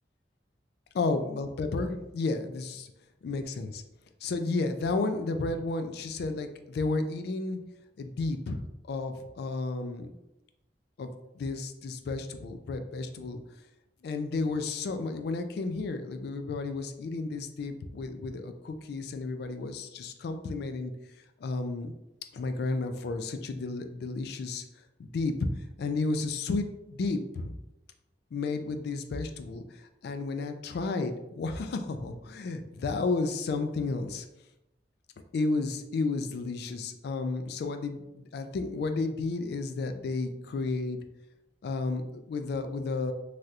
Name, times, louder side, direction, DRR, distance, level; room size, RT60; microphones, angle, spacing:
voice 1, 0.9-2.9 3.2-3.8 4.2-7.6 8.0-8.6 8.9-10.1 11.0-11.1 11.4-13.4 14.0-20.9 21.4-21.9 22.3-24.6 25.0-25.3 25.8-27.5 28.3-34.3 35.3-41.0 41.6-43.1, left 3 dB, 65° left, 7 dB, 0.3 m, -32 dB
3.3 x 2.4 x 2.7 m, 0.92 s
head